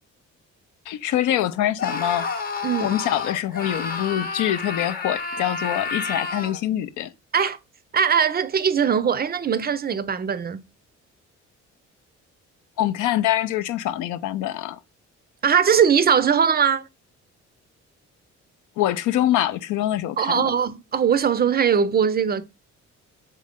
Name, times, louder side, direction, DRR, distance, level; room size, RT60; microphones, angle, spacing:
voice 1, 0.9-2.3 2.8-7.1 12.8-14.8 18.8-20.5, left 12 dB, 80° left, 0.5 m, -24 dB
Screaming, 1.8-6.6, left 4 dB, 30° left, 0.8 m, -30 dB
voice 2, 2.6-3.0 7.3-7.6 7.9-10.6 15.4-16.9 20.2-22.4, right 7 dB, 30° right, 0.4 m, -20 dB
3.8 x 3.2 x 3.5 m
cardioid pair, 90°, 30 cm